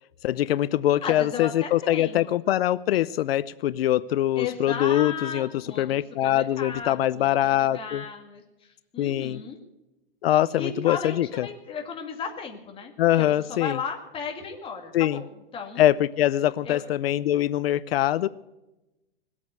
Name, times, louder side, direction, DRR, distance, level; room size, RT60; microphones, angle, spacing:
voice 1, 0.2-5.5 5.8-8.0 9.0-9.4 10.2-11.5 13.0-13.8 14.9-15.2 15.8-18.3, left 13 dB, 85° left, 17 dB, 0.6 m, -23 dB
voice 2, 1.0-2.4 4.4-9.6 10.6-15.8 16.6-16.9, left 6 dB, 20° left, 3 dB, 2.2 m, -35 dB
20.5 x 8.6 x 8.0 m, 0.98 s
supercardioid pair, 150°, 29 cm